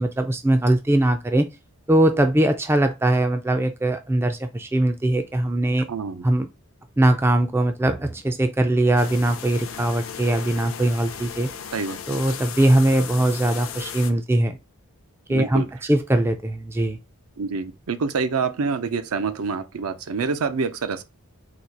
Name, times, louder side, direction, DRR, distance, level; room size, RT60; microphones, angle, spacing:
voice 1, 0.0-1.5 1.9-5.9 6.2-6.5 7.0-11.5 12.1-14.6 15.3-17.0, right 1 dB, 10° right, 0.3 m, -21 dB
voice 2, 5.9-6.3 11.7-12.0 15.3-15.7 17.4-21.0, right 5 dB, 75° right, 0.5 m, -26 dB
sound 1, 9.0-14.1, left 8 dB, 65° left, 0.6 m, -36 dB
4.1 x 2.3 x 4.6 m
head